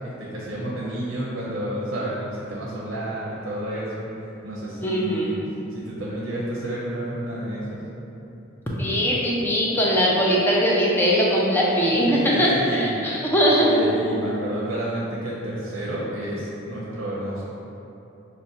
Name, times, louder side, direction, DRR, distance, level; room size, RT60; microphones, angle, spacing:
voice 1, 0.0-4.1 4.4-5.4 5.7-7.8 11.9-12.9 13.6-17.5, right 1 dB, 65° right, -7 dB, 0.6 m, -30 dB
voice 2, 4.8-5.3 8.8-13.7, equal, 10° left, -5 dB, 0.5 m, -20 dB
5.9 x 2.1 x 2.7 m, 2.9 s
head